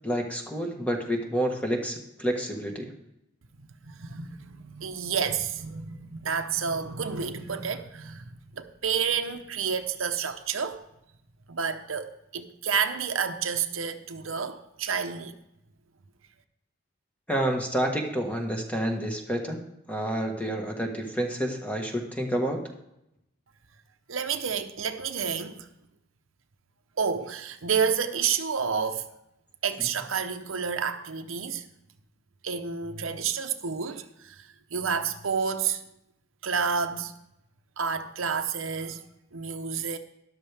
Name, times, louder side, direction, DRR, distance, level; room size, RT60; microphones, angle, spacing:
voice 1, 0.0-2.9 17.3-19.6 19.9-22.6, equal, 5° left, 1.4 m, -29 dB
voice 2, 3.8-10.8 11.5-15.4 24.1-25.7 27.0-29.1 29.6-31.7 32.4-35.8 36.4-37.1 37.8-39.1 39.3-40.0, right 6 dB, 90° right, 0.8 m, -30 dB
13.0 x 11.0 x 3.4 m
head